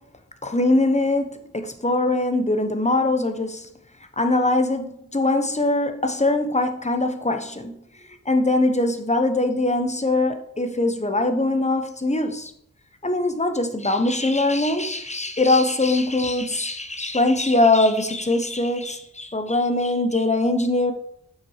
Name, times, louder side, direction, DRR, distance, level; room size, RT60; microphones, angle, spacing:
voice 1, 0.4-3.7 4.2-7.7 8.2-12.5 13.0-20.9, left 2 dB, 20° left, 6 dB, 1.2 m, -22 dB
7.8 x 6.3 x 4.9 m, 0.74 s
wide cardioid pair, 75°, 30 cm